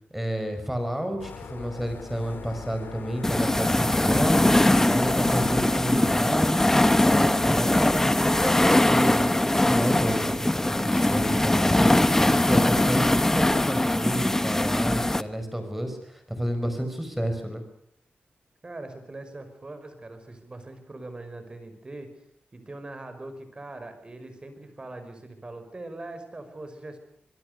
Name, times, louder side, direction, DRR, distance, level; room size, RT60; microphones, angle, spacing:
voice 1, 0.1-4.6 4.9-6.7 7.0-17.6, equal, 5° right, 7 dB, 5.6 m, -30 dB
sound 1, 1.2-6.0, left 6 dB, 70° left, 1.9 m, -41 dB
sound 2, 3.2-15.2, left 1 dB, 10° left, 1.0 m, -21 dB
voice 2, 18.6-22.1 22.5-27.0, right 2 dB, 25° right, 9 dB, 5.1 m, -41 dB
25.5 x 22.0 x 6.7 m, 0.67 s
wide cardioid pair, 125°, 4 cm